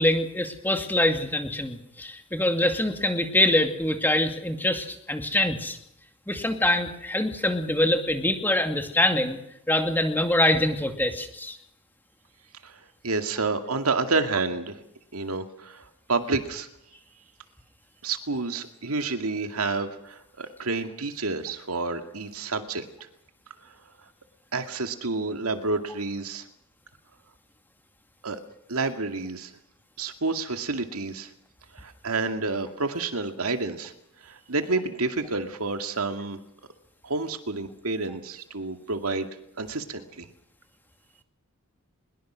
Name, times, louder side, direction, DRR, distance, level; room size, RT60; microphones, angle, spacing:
voice 1, 0.0-5.8 6.3-9.4 9.7-11.6, left 1 dB, 10° left, 6 dB, 2.4 m, -24 dB
voice 2, 12.6-14.8 15.1-16.7 18.0-22.8 24.5-26.5 28.2-28.4 28.7-29.5 30.0-31.3 31.7-33.9 34.2-36.4 37.0-39.3 39.6-40.3, right 3 dB, 85° right, 7 dB, 2.3 m, -29 dB
23.0 x 21.5 x 6.3 m, 0.79 s
head